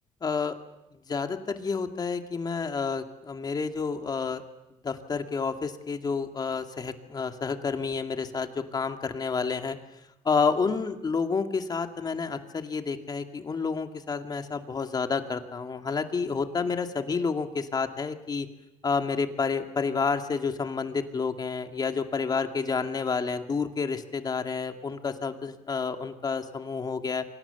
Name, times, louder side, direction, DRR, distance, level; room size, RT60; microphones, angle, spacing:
voice 1, 0.2-0.6 1.1-4.4 4.8-9.8 10.2-18.5 18.8-27.2, left 5 dB, 35° left, 6 dB, 2.3 m, -29 dB
29.5 x 25.0 x 7.2 m, 0.90 s
cardioid pair, 105°, 12 cm